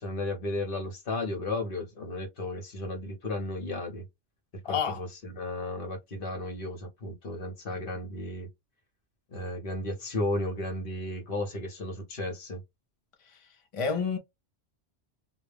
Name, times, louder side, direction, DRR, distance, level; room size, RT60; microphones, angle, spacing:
voice 1, 0.0-4.0 4.6-8.5 9.3-12.6, left 2 dB, 55° left, 1.0 m, -34 dB
voice 2, 4.6-5.0 13.2-14.2, left 6 dB, 40° left, 0.5 m, -30 dB
2.3 x 2.1 x 3.2 m
omnidirectional pair, 1.2 m